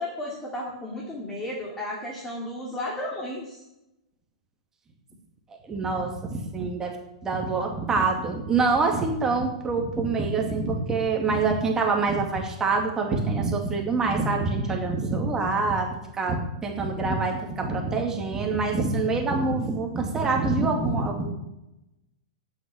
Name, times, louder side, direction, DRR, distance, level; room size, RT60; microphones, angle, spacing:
voice 1, 0.0-3.6, left 1 dB, 15° left, -3 dB, 2.8 m, -33 dB
voice 2, 5.6-7.0 7.2-21.3, right 3 dB, 15° right, 1 dB, 2.3 m, -25 dB
8.8 x 8.1 x 8.7 m, 0.89 s
hypercardioid pair, 125°, 3 cm